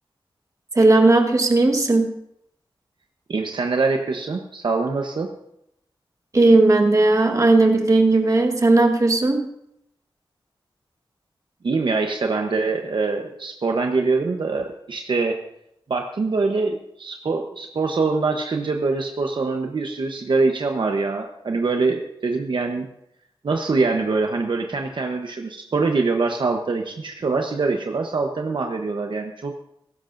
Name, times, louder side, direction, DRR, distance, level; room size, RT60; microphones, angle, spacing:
voice 1, 0.7-2.1 6.3-9.5, right 2 dB, 35° right, 3 dB, 1.5 m, -16 dB
voice 2, 3.3-5.3 11.6-15.4 15.9-22.9 23.4-29.5, right 3 dB, 60° right, 3 dB, 1.0 m, -24 dB
17.0 x 16.0 x 2.6 m, 0.77 s
wide cardioid pair, 120°, 9 cm